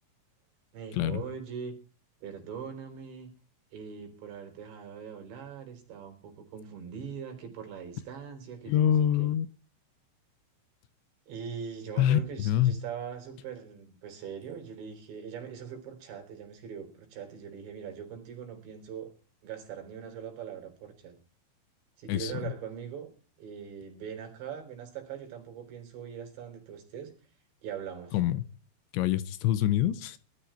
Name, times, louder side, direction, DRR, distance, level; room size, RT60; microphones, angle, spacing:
voice 1, 0.7-1.7 2.2-3.3 3.7-9.3 11.3-19.1 19.4-21.2 22.0-23.1 23.4-27.1 27.6-28.2, right 7 dB, 70° right, 6.3 m, -41 dB
voice 2, 8.7-9.5 12.0-12.8 22.1-22.3 28.1-28.4 28.9-30.2, left 11 dB, 80° left, 3.1 m, -25 dB
19.0 x 13.0 x 4.5 m
omnidirectional pair, 5.4 m